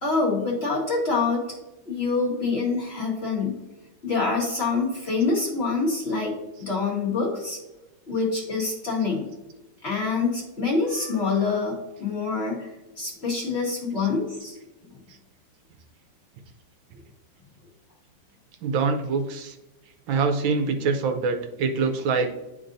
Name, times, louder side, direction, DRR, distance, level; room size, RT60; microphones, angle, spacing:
voice 1, 0.0-1.4 1.8-3.6 4.0-7.6 8.1-9.3 9.8-12.7 13.0-14.6, left 4 dB, 35° left, -3 dB, 1.4 m, -26 dB
voice 2, 18.6-19.6 20.1-22.3, right 4 dB, 75° right, 6 dB, 1.3 m, -25 dB
10.5 x 3.7 x 2.6 m, 1.0 s
omnidirectional pair, 2.2 m